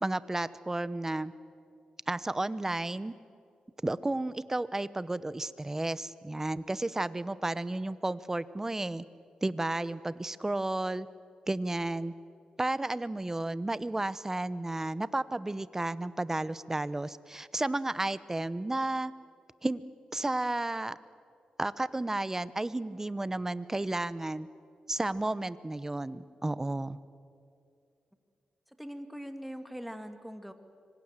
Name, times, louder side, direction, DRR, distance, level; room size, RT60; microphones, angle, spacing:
voice 1, 0.0-1.3 2.1-3.1 3.8-9.0 9.4-11.1 11.5-12.1 12.6-19.1 19.6-19.8 20.1-21.0 21.6-24.5 24.9-27.0, right 2 dB, 20° right, 16 dB, 0.9 m, -32 dB
voice 2, 28.8-30.5, equal, ahead, 7 dB, 2.2 m, -41 dB
25.5 x 24.0 x 7.5 m, 2.5 s
cardioid pair, 75°, 2 cm